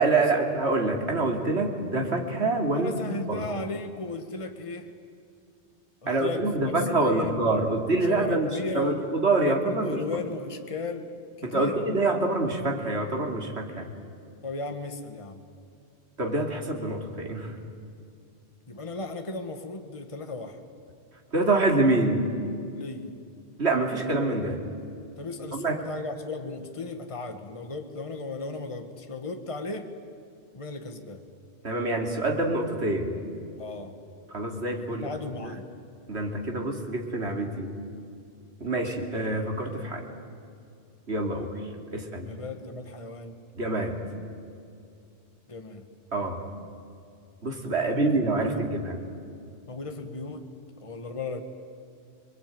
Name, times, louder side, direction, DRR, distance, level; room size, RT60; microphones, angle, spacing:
voice 1, 0.0-3.0 3.3-3.4 6.1-8.5 8.7-10.0 11.4-13.9 16.2-17.5 21.3-22.3 23.6-24.6 25.5-25.9 31.6-33.2 34.3-35.1 35.4-35.5 36.1-37.7 38.6-40.0 41.1-41.5 41.9-42.3 43.6-44.0 46.1-46.4 47.4-49.0, right 2 dB, 75° right, 3 dB, 3.3 m, -26 dB
voice 2, 2.8-4.9 6.0-7.7 8.0-9.1 9.4-11.9 14.4-15.4 18.7-20.6 22.7-23.1 25.2-29.9 30.5-31.2 33.6-34.0 34.9-35.7 42.2-43.4 45.5-45.9 47.8-48.7 49.7-50.5 50.8-51.4, left 3 dB, 30° left, 6 dB, 1.5 m, -36 dB
26.0 x 22.0 x 9.3 m, 2.4 s
omnidirectional pair, 1.1 m